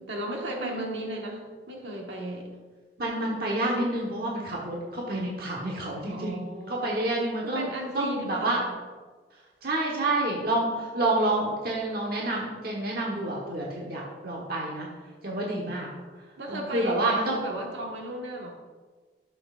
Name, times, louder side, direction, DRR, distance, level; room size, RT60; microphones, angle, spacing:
voice 1, 0.0-2.5 6.1-6.9 7.4-8.7 16.4-18.5, right 1 dB, 80° right, -1 dB, 1.5 m, -35 dB
voice 2, 3.0-7.7 7.9-8.6 9.6-14.9 15.2-15.9 16.5-17.4, right 2 dB, 55° right, -3 dB, 1.2 m, -28 dB
11.5 x 7.0 x 2.5 m, 1.4 s
head